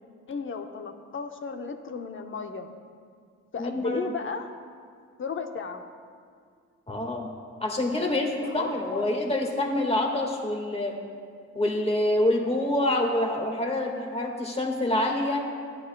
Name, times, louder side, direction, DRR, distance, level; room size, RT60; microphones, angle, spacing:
voice 1, 0.3-2.7 3.5-4.5 5.2-5.8 8.1-9.0, left 5 dB, 40° left, 6 dB, 0.9 m, -34 dB
voice 2, 3.6-4.0 6.9-7.3 7.6-11.0 11.5-15.5, left 1 dB, 20° left, 1 dB, 1.8 m, -26 dB
15.0 x 10.0 x 2.3 m, 2.1 s
cardioid pair, 90°, 30 cm